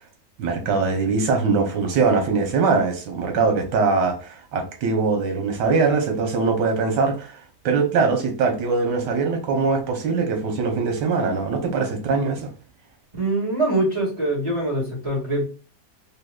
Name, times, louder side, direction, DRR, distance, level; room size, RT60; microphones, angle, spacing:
voice 1, 0.4-12.5, right 4 dB, 85° right, 1.5 m, -22 dB
voice 2, 13.2-15.4, right 1 dB, 15° right, 1.8 m, -23 dB
3.9 x 2.7 x 2.3 m
omnidirectional pair, 1.8 m